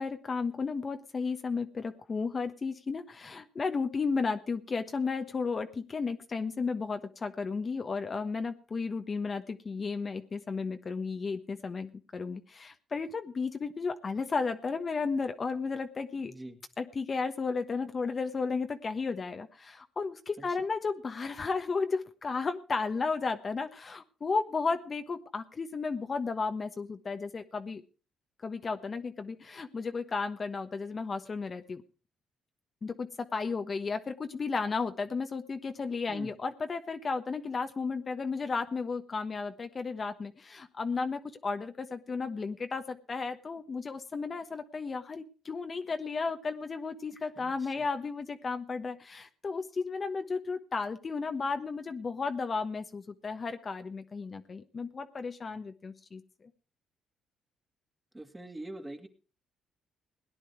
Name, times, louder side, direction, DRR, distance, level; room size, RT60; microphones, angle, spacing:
voice 1, 0.0-16.3 16.8-27.8 28.4-31.8 32.8-56.5, left 4 dB, 40° left, 7 dB, 1.2 m, -34 dB
voice 2, 16.3-16.6 20.4-20.5 36.1-36.3 47.4-47.8 58.1-59.1, right 1 dB, 15° right, 6 dB, 2.2 m, -44 dB
17.5 x 10.0 x 4.6 m, 0.35 s
supercardioid pair, 75°, 0 cm